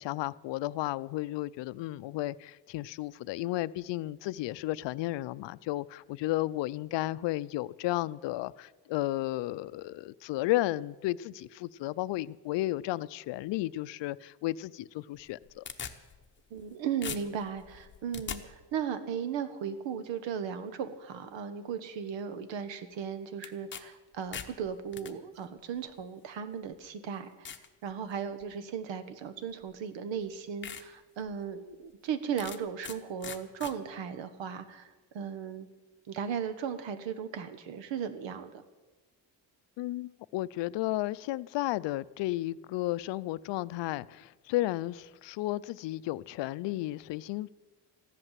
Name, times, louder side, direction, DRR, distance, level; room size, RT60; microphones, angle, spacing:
voice 1, 0.0-15.6 39.8-47.5, left 17 dB, 75° left, 18 dB, 0.5 m, -33 dB
sound 1, 15.2-16.7 17.0-18.4 23.4-23.8 24.1-25.1 26.0-26.1 26.7-26.8 27.4-27.7 28.2-28.5 29.7-29.8 30.2-30.3 30.6-30.8 31.3-31.4 32.4-33.0 33.2-33.7, left 7 dB, 25° left, 0.8 m, -41 dB
voice 2, 16.5-35.7 36.1-38.6, right 7 dB, 90° right, 11 dB, 1.4 m, -36 dB
14.5 x 11.0 x 7.5 m, 1.2 s
cardioid pair, 175°, 43 cm